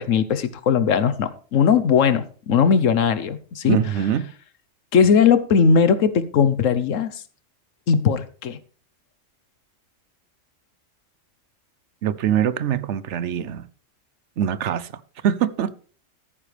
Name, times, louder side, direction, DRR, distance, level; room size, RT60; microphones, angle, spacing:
voice 1, 0.0-3.8 4.9-7.1 7.9-8.6, left 6 dB, 80° left, 1.3 m, -19 dB
voice 2, 3.6-4.3 12.0-13.7 14.4-14.9 15.2-15.7, right 9 dB, 70° right, 1.0 m, -23 dB
13.5 x 9.9 x 3.3 m
omnidirectional pair, 1.3 m